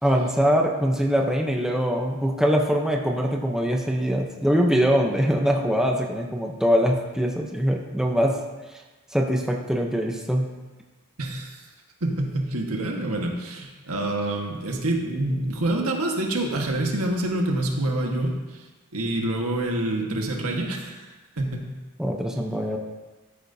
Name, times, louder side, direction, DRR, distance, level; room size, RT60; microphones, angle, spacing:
voice 1, 0.0-8.4 9.1-10.5 22.0-22.8, equal, 5° right, 0 dB, 0.8 m, -23 dB
voice 2, 11.2-11.6 12.0-21.1 21.4-21.7, right 1 dB, 75° right, 1 dB, 1.5 m, -27 dB
13.5 x 8.9 x 2.8 m, 1.2 s
head